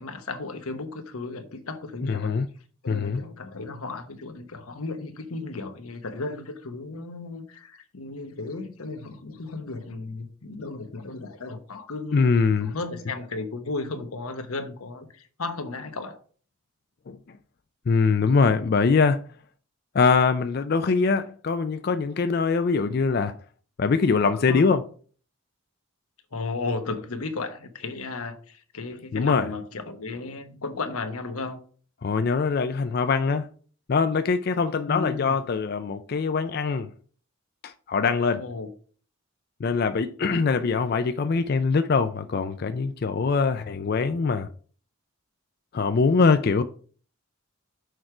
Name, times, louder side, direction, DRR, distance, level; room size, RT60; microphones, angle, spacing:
voice 1, 0.0-2.3 2.8-12.3 12.6-16.2 24.5-24.8 26.3-31.6 34.8-35.4 38.4-38.7, left 3 dB, 90° left, 1.0 m, -34 dB
voice 2, 2.1-2.5 2.9-3.2 12.1-12.7 17.1-17.2 17.9-19.2 19.9-23.3 23.8-24.8 29.1-29.5 32.0-33.5 33.9-36.9 37.6-38.4 39.6-44.5 45.7-46.6, left 4 dB, 45° left, 0.4 m, -23 dB
6.4 x 4.6 x 4.9 m
head